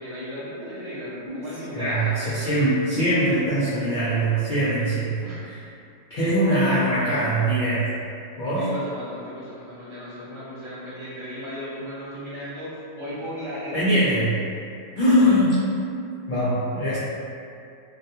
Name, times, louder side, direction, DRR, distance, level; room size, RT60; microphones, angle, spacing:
voice 1, 0.0-2.7 5.2-5.4 8.5-14.2, equal, 30° right, -10 dB, 0.6 m, -36 dB
voice 2, 1.3-5.2 6.1-7.9 8.4-8.7 13.7-14.3 15.0-15.6 16.3-17.0, equal, 55° left, -11 dB, 0.5 m, -22 dB
2.3 x 2.3 x 2.7 m, 2.5 s
omnidirectional pair, 1.4 m